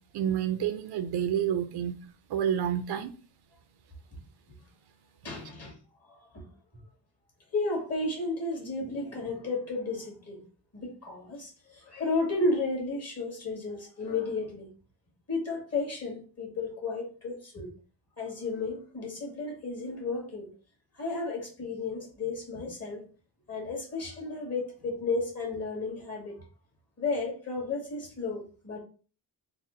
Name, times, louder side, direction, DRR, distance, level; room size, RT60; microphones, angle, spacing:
voice 1, 0.1-1.9 2.3-3.1, right 9 dB, 65° right, 0.5 m, -29 dB
voice 2, 5.2-5.8 6.1-6.4 7.5-10.4 10.7-14.7 15.3-17.7 18.2-20.5 20.9-23.0 23.5-26.4 27.0-28.8, left 3 dB, 35° left, 1.9 m, -33 dB
4.1 x 2.1 x 3.8 m
cardioid pair, 130°, 43 cm